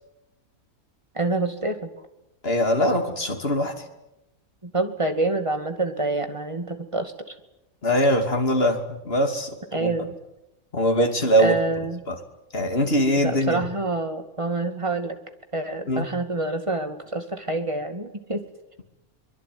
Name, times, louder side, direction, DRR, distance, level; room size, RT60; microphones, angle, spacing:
voice 1, 1.1-2.1 4.6-7.3 9.7-10.2 11.4-12.0 13.2-15.2 15.5-18.4, right 2 dB, 20° right, 7 dB, 2.3 m, -27 dB
voice 2, 2.4-3.7 7.8-9.9 10.7-11.6 12.1-12.2 12.5-13.6 15.9-16.0, equal, 40° left, 5 dB, 3.1 m, -22 dB
24.0 x 22.0 x 9.5 m, 0.93 s
omnidirectional pair, 1.5 m